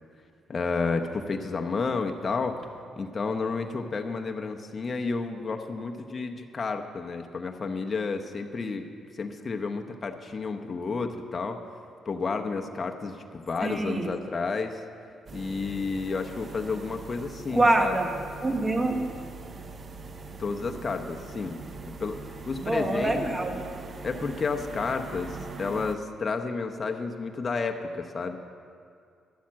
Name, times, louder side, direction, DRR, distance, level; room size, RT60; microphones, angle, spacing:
voice 1, 0.5-2.6 3.0-8.9 9.1-11.6 12.1-14.8 15.3-17.9 20.4-21.6 21.9-22.2 22.5-23.2 24.0-28.4, left 4 dB, 35° left, 4 dB, 0.9 m, -31 dB
voice 2, 13.6-14.1 17.5-18.1 18.4-19.1 22.6-23.7, right 2 dB, 20° right, 5 dB, 1.2 m, -25 dB
sound 1, 15.3-26.0, right 3 dB, 40° right, 0.6 m, -42 dB
11.5 x 7.2 x 7.4 m, 2.4 s
cardioid pair, 75°, 0 cm